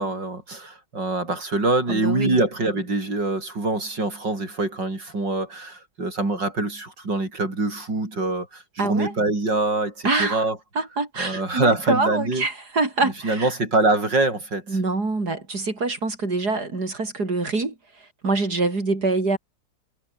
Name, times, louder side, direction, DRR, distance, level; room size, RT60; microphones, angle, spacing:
voice 1, 0.0-10.6 11.2-12.4 13.0-14.8, right 2 dB, 90° right, 7.6 m, -24 dB
voice 2, 1.9-2.4 8.8-9.1 10.0-10.4 10.8-13.5 14.7-17.7 18.2-19.4, right 3 dB, 65° right, 5.2 m, -25 dB
omnidirectional pair, 1.9 m